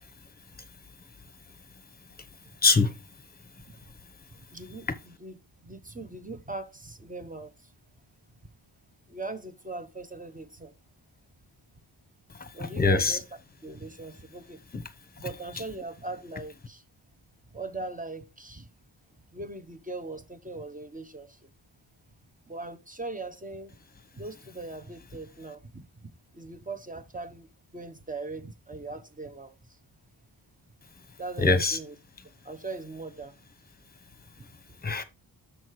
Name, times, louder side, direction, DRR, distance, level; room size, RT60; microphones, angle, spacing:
voice 1, 2.6-3.0 12.4-13.2 14.7-14.8 31.4-31.8 34.8-35.0, left 3 dB, 20° left, 1.0 m, -23 dB
voice 2, 4.5-5.3 5.6-7.5 9.1-10.7 12.5-13.2 13.6-14.6 15.2-16.8 17.5-18.7 19.3-21.4 22.5-23.7 24.2-25.9 26.3-29.6 31.2-31.9 32.4-33.3, right 3 dB, 20° right, 0.8 m, -40 dB
6.7 x 6.3 x 4.6 m
wide cardioid pair, 135°, 45 cm